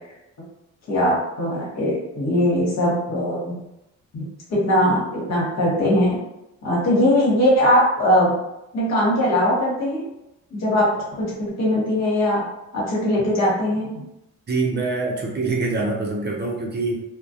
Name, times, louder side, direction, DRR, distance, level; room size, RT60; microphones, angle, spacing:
voice 1, 0.9-3.6 4.1-6.2 6.6-8.3 8.7-10.0 10.5-10.9 11.2-12.4 12.7-14.0, left 1 dB, 60° left, -5 dB, 1.2 m, -20 dB
voice 2, 14.5-17.0, right 3 dB, 35° right, -1 dB, 0.5 m, -25 dB
2.3 x 2.1 x 2.6 m, 0.88 s
cardioid pair, 90°, 30 cm